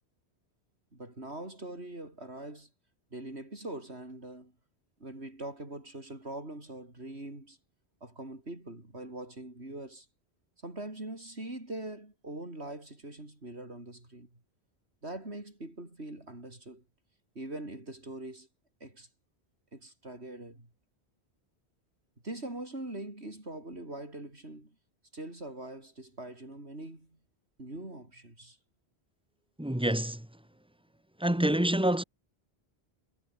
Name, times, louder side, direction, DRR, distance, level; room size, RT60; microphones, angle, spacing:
voice 1, 0.9-2.7 3.1-4.5 5.0-7.6 8.0-10.1 10.6-14.4 15.0-16.8 17.3-18.5 18.8-19.1 19.7-20.7 22.2-24.7 25.1-27.2 27.6-28.6, right 1 dB, 80° right, 6.5 m, -42 dB
voice 2, 29.6-30.3 31.2-32.0, right 1 dB, 5° right, 1.8 m, -27 dB
omnidirectional pair, 1.1 m